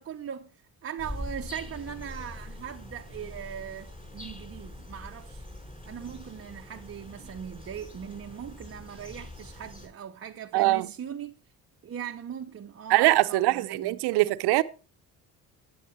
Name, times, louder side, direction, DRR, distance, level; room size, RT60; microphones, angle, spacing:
voice 1, 0.0-5.4 5.9-11.3 11.8-14.0, right 8 dB, 35° right, 0.8 m, -40 dB
sound 1, 1.0-9.9, left 1 dB, 20° left, 5.3 m, -43 dB
voice 2, 10.5-10.9 12.9-14.6, right 18 dB, 75° right, 0.8 m, -22 dB
14.0 x 9.4 x 3.1 m
supercardioid pair, 70°, 39 cm